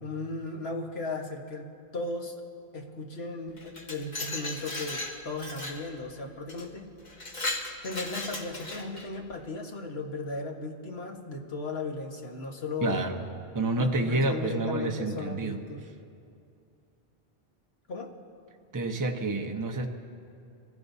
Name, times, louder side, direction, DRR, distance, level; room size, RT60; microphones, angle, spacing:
voice 1, 0.0-2.3 2.7-6.9 7.8-13.0 13.8-15.8 17.9-18.1, left 3 dB, 70° left, 1 dB, 1.6 m, -36 dB
Glass, 3.6-5.8 6.5-6.7 7.1-9.1, left 2 dB, 45° left, 1.4 m, -36 dB
voice 2, 12.8-13.2 13.5-15.6 18.7-19.9, right 2 dB, 20° right, 3 dB, 0.8 m, -28 dB
25.5 x 15.5 x 2.7 m, 2.5 s
omnidirectional pair, 1.1 m